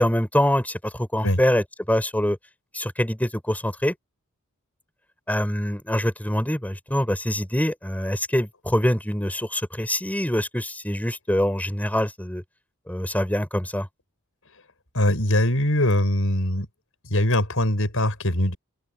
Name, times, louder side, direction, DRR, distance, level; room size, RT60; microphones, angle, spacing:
voice 1, 0.0-2.4 2.7-3.9 5.3-12.4 12.9-13.9, equal, 5° left, 5.4 m, -24 dB
voice 2, 14.9-16.7 17.0-18.6, left 1 dB, 65° left, 7.4 m, -22 dB
open air
head